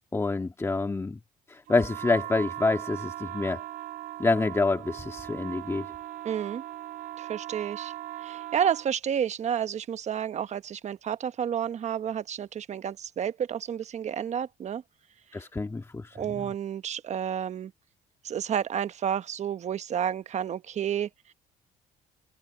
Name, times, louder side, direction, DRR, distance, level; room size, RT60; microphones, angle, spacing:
voice 1, 0.1-1.2 1.5-3.6 4.2-5.9 15.3-16.5, left 3 dB, 15° left, 1.7 m, -27 dB
sound 1, 1.7-8.9, right 14 dB, 70° right, 3.1 m, -39 dB
voice 2, 6.2-6.6 7.2-7.9 8.2-14.8 16.1-17.7 18.2-21.1, right 9 dB, 50° right, 1.0 m, -30 dB
cardioid pair, 100°, 15 cm